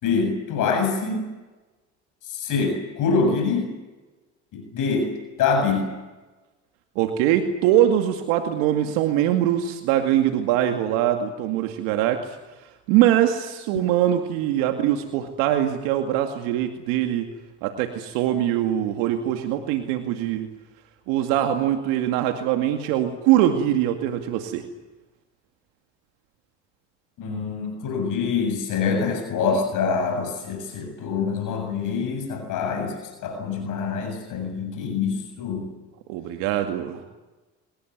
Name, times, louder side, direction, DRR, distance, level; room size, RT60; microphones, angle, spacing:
voice 1, 0.0-1.3 2.3-3.7 4.5-5.1 5.4-5.9 27.2-32.9 33.2-35.7, left 5 dB, 65° left, 5 dB, 7.5 m, -25 dB
voice 2, 7.0-12.4 12.9-17.3 17.6-20.5 21.1-24.6 36.1-37.0, right 11 dB, 80° right, 6 dB, 2.3 m, -22 dB
24.5 x 20.0 x 9.5 m, 1.1 s
supercardioid pair, 75°, 34 cm